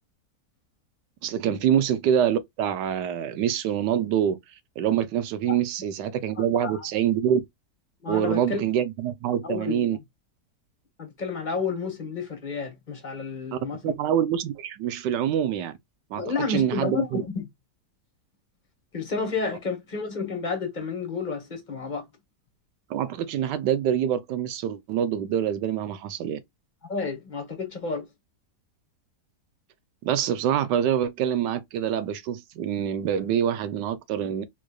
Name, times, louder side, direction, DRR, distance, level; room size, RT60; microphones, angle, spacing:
voice 1, 1.2-4.4 4.8-7.4 8.1-10.0 13.5-15.7 16.1-16.2 16.5-17.2 22.9-26.4 30.0-34.4, right 9 dB, 90° right, 1.3 m, -25 dB
voice 2, 6.4-6.9 8.0-8.6 9.4-9.9 11.0-13.9 16.1-17.4 18.9-22.1 26.9-28.1, left 4 dB, 30° left, 1.0 m, -30 dB
3.9 x 3.1 x 2.3 m
omnidirectional pair, 1.8 m